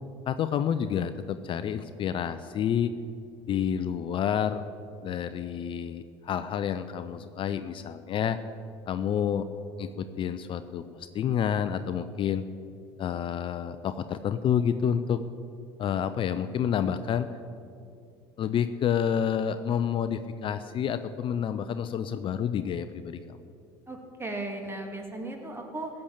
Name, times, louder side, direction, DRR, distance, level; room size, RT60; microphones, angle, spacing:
voice 1, 0.3-2.9 3.5-4.6 5.0-8.4 8.9-9.5 9.8-12.5 13.0-15.2 15.8-17.3 18.4-23.4, left 8 dB, 45° left, 11 dB, 0.6 m, -29 dB
voice 2, 23.9-25.9, right 2 dB, 20° right, 2 dB, 2.7 m, -36 dB
16.0 x 6.7 x 8.8 m, 2.5 s
hypercardioid pair, 70°, 12 cm